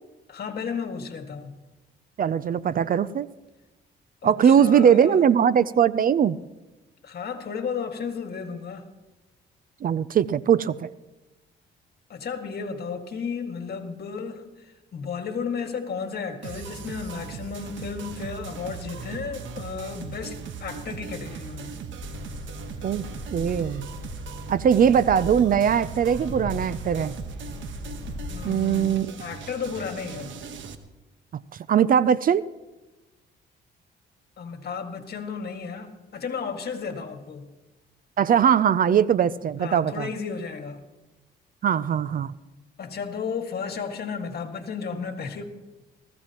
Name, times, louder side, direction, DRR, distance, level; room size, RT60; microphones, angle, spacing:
voice 1, 0.3-1.6 4.2-5.2 7.0-8.8 12.1-21.7 28.3-30.4 34.4-37.5 39.6-40.8 42.8-45.4, left 6 dB, 50° left, 5 dB, 2.0 m, -33 dB
voice 2, 2.2-3.3 4.2-6.4 9.8-10.9 22.8-23.0 23.3-23.9 24.5-27.1 28.4-29.1 31.7-32.4 38.2-40.1 41.6-42.3, right 8 dB, 45° right, 18 dB, 0.5 m, -20 dB
sound 1, 16.4-30.7, right 6 dB, 70° right, 1.3 m, -38 dB
sound 2, 22.0-28.4, left 3 dB, 20° left, 4.4 m, -39 dB
20.5 x 15.0 x 3.0 m, 1.1 s
cardioid pair, 90°, 20 cm